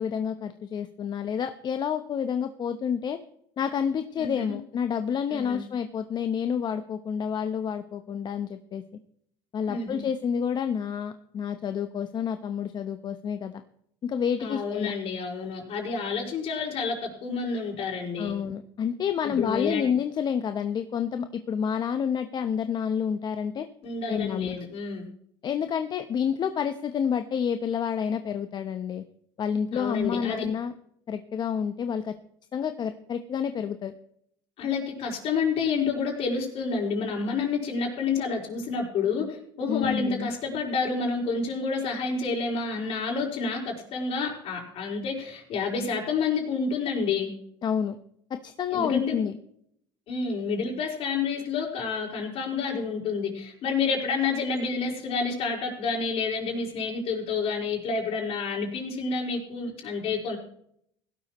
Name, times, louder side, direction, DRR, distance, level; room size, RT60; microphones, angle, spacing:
voice 1, 0.0-3.2 3.6-8.8 9.5-13.6 14.0-14.9 18.2-23.7 24.1-24.6 25.4-29.0 29.4-30.7 31.1-32.1 32.5-33.9 39.7-40.3 47.6-48.0 48.3-49.3, left 7 dB, 40° left, 8 dB, 0.9 m, -29 dB
voice 2, 4.2-4.6 5.3-5.6 9.7-10.0 14.4-18.4 19.2-19.9 23.8-25.1 29.7-30.5 34.6-47.3 48.7-49.2 50.1-60.4, left 4 dB, 55° left, 1 dB, 5.1 m, -29 dB
17.0 x 12.5 x 3.1 m, 0.68 s
supercardioid pair, 105°, 12 cm